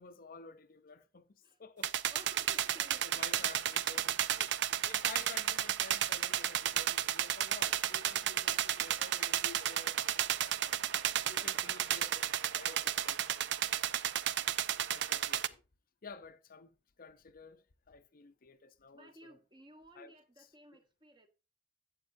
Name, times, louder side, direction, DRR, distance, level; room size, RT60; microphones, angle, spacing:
voice 1, 0.0-1.9 3.0-10.8 11.3-12.3 12.5-13.3 14.9-15.6 16.0-19.4 19.9-20.1 20.4-20.5, left 4 dB, 50° left, 0.6 m, -52 dB
sound 1, 1.8-15.5, right 11 dB, 65° right, 0.5 m, -33 dB
voice 2, 2.1-3.6 11.2-11.5 18.9-21.3, right 1 dB, 25° right, 1.2 m, -57 dB
11.5 x 8.4 x 2.6 m
head